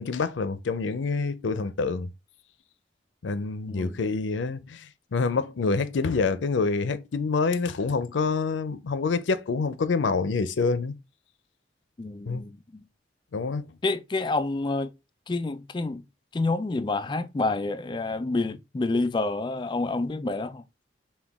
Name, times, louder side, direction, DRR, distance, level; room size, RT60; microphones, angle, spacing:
voice 1, 0.0-2.1 3.2-10.9 12.3-12.4 13.3-13.7, left 4 dB, 90° left, 0.5 m, -27 dB
voice 2, 12.0-12.8 13.8-14.9 15.3-16.0 16.3-20.6, left 3 dB, 25° left, 0.3 m, -28 dB
5.8 x 2.3 x 3.5 m
head